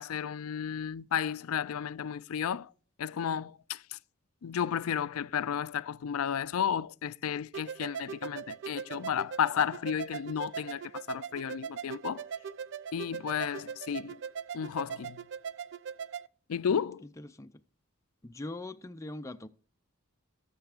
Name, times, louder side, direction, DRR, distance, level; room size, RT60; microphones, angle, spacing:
voice 1, 0.0-2.7 3.0-4.0 4.4-12.2 12.9-14.2 14.5-15.2 16.5-17.0, left 8 dB, 80° left, 0.4 m, -33 dB
sound 1, 7.5-16.3, right 7 dB, 55° right, 0.4 m, -40 dB
voice 2, 16.7-17.6 18.2-19.5, left 2 dB, 15° left, 0.4 m, -42 dB
19.0 x 6.9 x 2.4 m
head